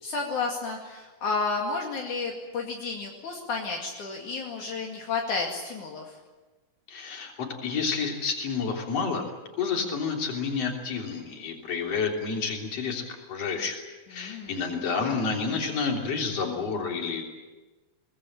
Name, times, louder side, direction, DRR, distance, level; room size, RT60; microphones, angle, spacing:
voice 1, 0.0-6.2 14.1-14.8, left 4 dB, 65° left, -1 dB, 3.7 m, -32 dB
voice 2, 6.9-9.3 9.6-13.8 14.1-17.2, left 5 dB, 50° left, 1 dB, 4.3 m, -29 dB
24.0 x 19.5 x 8.9 m, 1.2 s
omnidirectional pair, 3.9 m